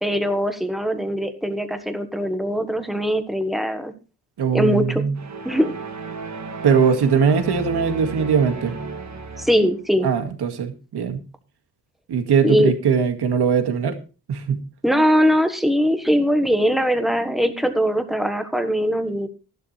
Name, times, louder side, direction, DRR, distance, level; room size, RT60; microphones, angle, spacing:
voice 1, 0.0-3.9 4.5-5.0 5.4-5.7 9.4-10.1 12.4-12.7 14.8-19.3, equal, ahead, 1.3 m, -21 dB
voice 2, 4.4-5.1 6.6-8.7 10.0-11.2 12.1-14.0 14.3-14.6, right 6 dB, 70° right, 2.1 m, -20 dB
sound 1, 5.2-9.8, right 4 dB, 40° right, 1.7 m, -34 dB
14.0 x 11.5 x 3.3 m
wide cardioid pair, 170°, 41 cm